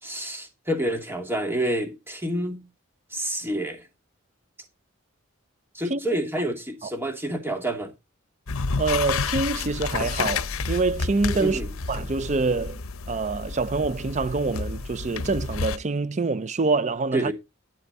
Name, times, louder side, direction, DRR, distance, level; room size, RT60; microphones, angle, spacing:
voice 1, 0.0-2.6 3.1-3.8 5.7-7.9 11.4-11.7 17.1-17.3, right 1 dB, 10° right, 2.7 m, -28 dB
voice 2, 5.9-6.5 8.8-11.6 11.9-12.8 13.1-17.3, right 3 dB, 35° right, 0.5 m, -26 dB
sound 1, 8.5-15.8, left 4 dB, 85° left, 0.8 m, -30 dB
12.0 x 9.1 x 4.0 m
head